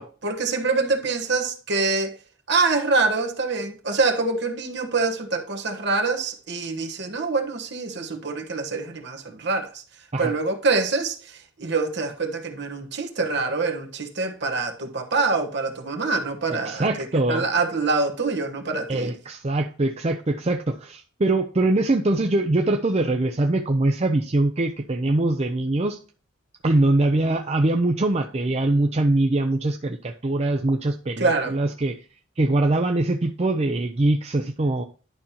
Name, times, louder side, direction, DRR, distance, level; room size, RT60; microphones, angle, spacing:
voice 1, 0.0-2.1 2.5-9.7 10.2-16.9 17.3-19.1 31.2-31.5, right 3 dB, 60° right, 1.3 m, -25 dB
voice 2, 16.5-17.4 18.9-26.0 26.6-32.0 32.4-34.8, right 2 dB, 30° right, 0.5 m, -23 dB
11.0 x 5.3 x 2.9 m
head